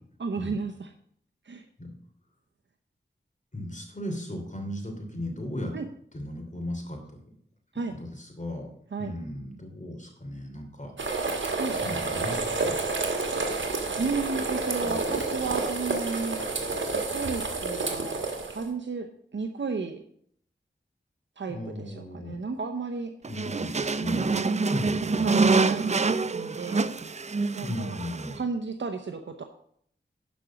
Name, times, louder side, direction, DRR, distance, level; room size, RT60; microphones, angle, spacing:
voice 1, 0.2-0.9 1.5-1.6 5.7-5.9 7.7-7.9 8.9-9.1 11.6-11.8 14.0-16.4 16.9-19.1 19.3-20.0 21.4-23.1 24.1-24.8 25.2-25.9 26.3-27.0 27.5-28.0 28.3-29.4, right 4 dB, 75° right, 5 dB, 0.8 m, -33 dB
voice 2, 3.5-5.7 6.1-7.2 7.9-8.7 9.0-11.4 11.7-12.8 14.8-15.2 21.5-22.4 23.3-24.4 24.7-25.5 27.6-28.4, left 1 dB, 40° left, 3 dB, 2.9 m, -36 dB
sound 1, 11.0-18.6, right 3 dB, 90° right, 1.4 m, -29 dB
sound 2, 23.2-28.4, right 4 dB, 35° right, 0.4 m, -26 dB
11.5 x 5.1 x 5.8 m, 0.65 s
wide cardioid pair, 50°, 19 cm